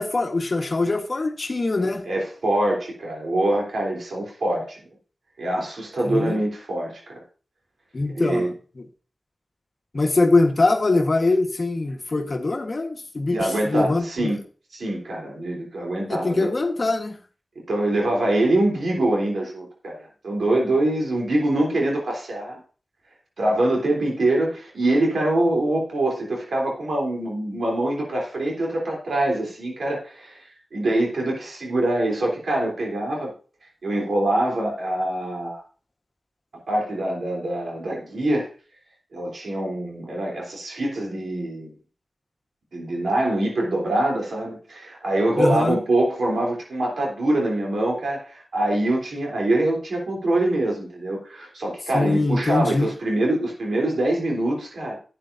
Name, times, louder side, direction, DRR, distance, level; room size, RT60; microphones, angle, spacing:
voice 1, 0.0-2.0 6.0-6.4 7.9-8.5 9.9-14.3 16.1-17.2 45.4-45.8 51.9-52.9, left 2 dB, 55° left, 1.2 m, -22 dB
voice 2, 2.0-4.8 5.4-7.2 8.1-8.5 13.3-14.4 14.7-16.5 17.7-22.6 23.4-33.3 33.8-35.6 36.7-38.5 39.1-41.7 42.7-55.0, right 1 dB, 85° right, 3.3 m, -24 dB
11.5 x 8.9 x 2.6 m
cardioid pair, 40°, 0 cm